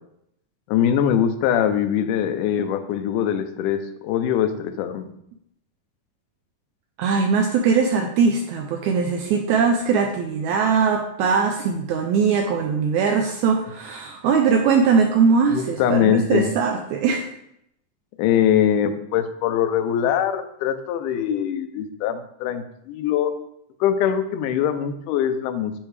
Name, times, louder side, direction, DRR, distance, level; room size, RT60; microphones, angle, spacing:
voice 1, 0.7-5.1 15.5-16.5 18.2-23.3 23.8-25.7, left 9 dB, 80° left, 9 dB, 2.0 m, -22 dB
voice 2, 7.0-17.3, right 5 dB, 80° right, 3 dB, 1.7 m, -20 dB
10.0 x 3.5 x 3.2 m, 0.76 s
omnidirectional pair, 3.8 m